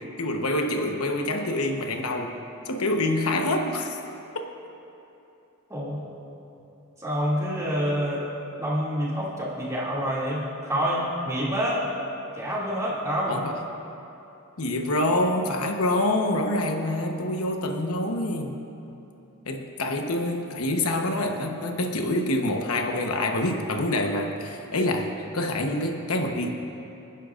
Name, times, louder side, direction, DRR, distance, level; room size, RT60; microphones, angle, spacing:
voice 1, 0.2-2.4 2.6-4.0 13.3-13.6 14.6-18.6 19.5-26.5, left 1 dB, 85° left, 3 dB, 1.0 m, -26 dB
voice 2, 5.7-6.0 7.0-8.2 8.6-11.8 12.4-13.4, equal, 15° right, -7 dB, 2.4 m, -27 dB
26.0 x 10.0 x 2.5 m, 2.9 s
head